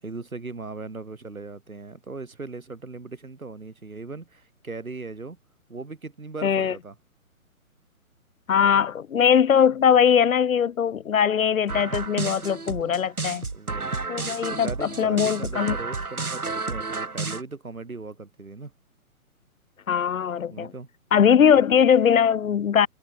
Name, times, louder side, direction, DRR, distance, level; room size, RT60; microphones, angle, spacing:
voice 1, 0.0-5.4 5.7-6.9 8.6-8.8 13.5-14.0 14.5-18.7 20.5-20.9 21.3-21.6, right 3 dB, 70° right, 6.7 m, -38 dB
voice 2, 6.4-6.7 8.5-13.4 14.1-15.8 19.9-20.7 21.1-22.9, left 8 dB, 70° left, 0.6 m, -20 dB
sound 1, 11.7-17.4, right 3 dB, 90° right, 1.2 m, -31 dB
figure-of-eight pair, 130°, 43 cm